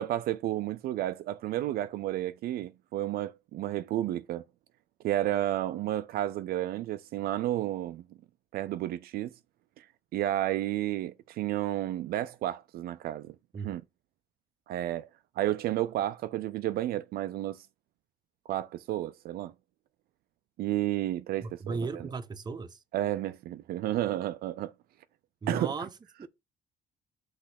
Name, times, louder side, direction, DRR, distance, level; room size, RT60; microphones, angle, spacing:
voice 1, 0.0-4.4 5.0-8.0 8.5-9.3 9.8-9.9 10.1-13.3 13.6-13.8 14.7-15.1 15.4-17.7 18.5-19.5 20.6-22.1 22.9-24.7 25.5-25.9, right 13 dB, 65° right, 0.4 m, -31 dB
voice 2, 21.4-22.8 25.4-25.9 26.2-26.3, right 4 dB, 25° right, 0.8 m, -35 dB
6.1 x 3.2 x 5.7 m
cardioid pair, 110°, 17 cm